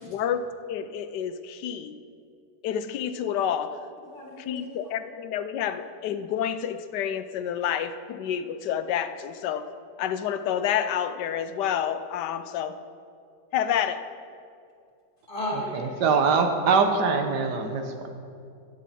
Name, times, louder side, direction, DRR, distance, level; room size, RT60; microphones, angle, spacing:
voice 1, 0.0-0.4 0.7-1.9 2.6-3.8 4.4-9.7 10.0-12.7 13.5-14.0, left 9 dB, 80° left, 11 dB, 1.2 m, -29 dB
voice 2, 4.0-4.9 15.3-16.1, left 1 dB, 30° left, -1 dB, 2.0 m, -35 dB
voice 3, 16.0-18.1, right 5 dB, 75° right, 5 dB, 1.4 m, -22 dB
14.5 x 9.1 x 4.2 m, 2.4 s
omnidirectional pair, 1.8 m